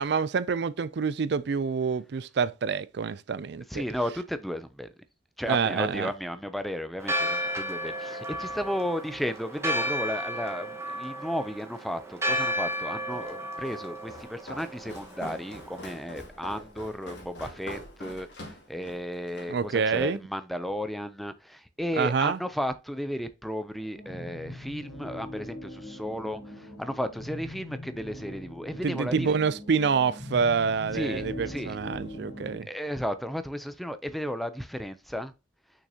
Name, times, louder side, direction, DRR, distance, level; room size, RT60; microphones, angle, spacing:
voice 1, 0.0-3.8 5.5-6.1 19.5-20.2 22.0-22.4 28.8-32.7, right 5 dB, 65° right, 0.4 m, -27 dB
voice 2, 3.7-4.9 5.4-29.4 30.9-31.8 32.6-35.3, equal, ahead, 0.5 m, -34 dB
Church bell, 7.0-15.9, equal, 15° right, 1.3 m, -33 dB
Walk footsteps, 13.1-19.6, left 1 dB, 70° left, 2.6 m, -44 dB
sound 1, 23.9-32.6, left 1 dB, 90° left, 4.3 m, -41 dB
6.3 x 6.3 x 2.8 m
head